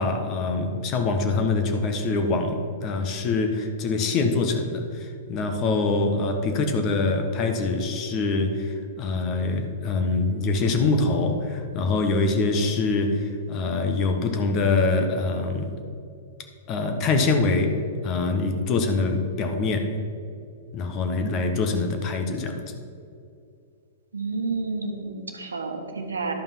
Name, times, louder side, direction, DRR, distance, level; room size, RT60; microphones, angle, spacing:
voice 1, 0.0-15.8 16.7-19.9 20.7-22.6, left 3 dB, 35° left, 5 dB, 1.3 m, -24 dB
voice 2, 24.1-26.3, right 3 dB, 80° right, 4 dB, 1.2 m, -30 dB
12.0 x 5.4 x 5.7 m, 2.5 s
figure-of-eight pair, 110°, 0 cm